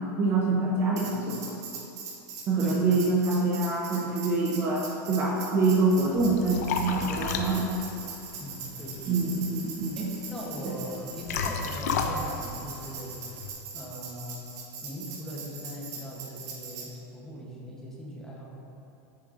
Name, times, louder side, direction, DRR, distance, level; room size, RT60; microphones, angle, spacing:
voice 1, 0.0-1.6 2.5-7.7 9.0-10.1 10.6-10.7, right 3 dB, 25° right, -3 dB, 0.6 m, -26 dB
Tambourine, 1.0-16.9, right 5 dB, 65° right, 1.1 m, -41 dB
Liquid, 5.8-13.5, left 5 dB, 65° left, 0.5 m, -34 dB
voice 2, 8.4-9.2 10.0-13.1 13.7-14.4 14.8-18.4, equal, 5° left, -5 dB, 0.8 m, -40 dB
8.3 x 5.9 x 2.5 m, 2.8 s
supercardioid pair, 165°, 9 cm